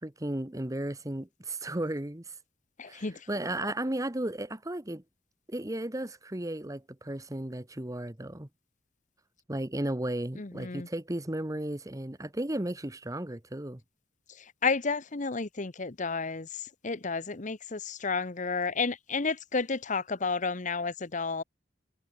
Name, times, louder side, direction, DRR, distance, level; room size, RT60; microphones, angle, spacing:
voice 1, 0.0-2.3 2.9-5.0 5.5-8.5 9.5-13.8, right 1 dB, 15° right, 1.1 m, -34 dB
voice 2, 2.8-3.2 10.4-10.9 14.6-16.5 16.8-21.4, left 4 dB, 40° left, 1.0 m, -31 dB
head